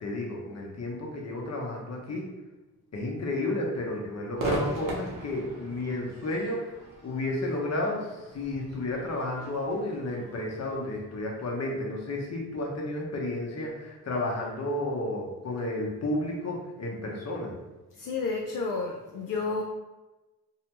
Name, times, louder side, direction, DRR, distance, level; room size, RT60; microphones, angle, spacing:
voice 1, 0.0-2.2 2.9-17.5, left 1 dB, 50° left, -1 dB, 0.8 m, -32 dB
Crowd / Fireworks, 4.4-11.7, right 2 dB, 65° right, 0.8 m, -38 dB
voice 2, 18.0-19.6, left 4 dB, 65° left, 0 dB, 0.5 m, -31 dB
2.6 x 2.2 x 2.9 m, 1.1 s
supercardioid pair, 55°, 35 cm